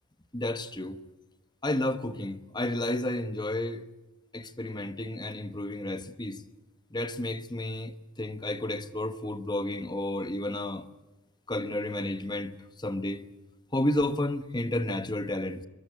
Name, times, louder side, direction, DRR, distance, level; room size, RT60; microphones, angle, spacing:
voice 1, 0.3-1.0 1.6-3.9 4.3-6.4 6.9-10.8 11.5-13.2 13.7-15.7, left 1 dB, 20° left, 1.1 m, -31 dB
23.0 x 21.5 x 9.5 m
head